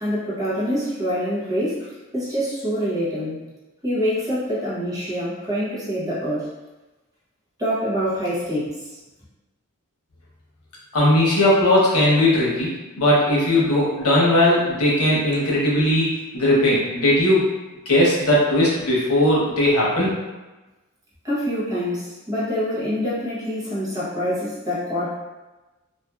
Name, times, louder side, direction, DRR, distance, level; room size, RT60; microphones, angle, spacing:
voice 1, 0.0-3.4 3.8-6.5 7.6-8.8 21.2-25.2, equal, 15° right, -9 dB, 0.8 m, -25 dB
voice 2, 10.9-12.7 13.0-16.1 16.3-17.5 17.9-20.1, left 1 dB, 90° left, -5 dB, 0.8 m, -18 dB
2.5 x 2.4 x 2.3 m, 1.1 s
head